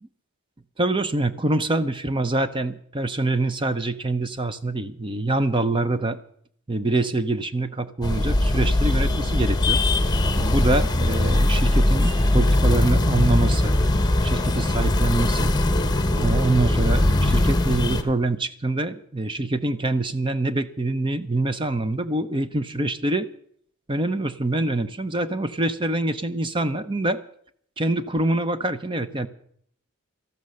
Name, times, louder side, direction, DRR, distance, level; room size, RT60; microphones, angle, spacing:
voice 1, 0.8-6.2 6.7-9.8 10.3-13.8 14.2-15.6 16.1-23.3 23.9-27.2 27.8-29.3, right 2 dB, 20° right, 12 dB, 0.6 m, -25 dB
sound 1, 8.0-18.0, left 1 dB, 20° left, 1.0 m, -20 dB
13.5 x 12.0 x 6.4 m, 0.64 s
head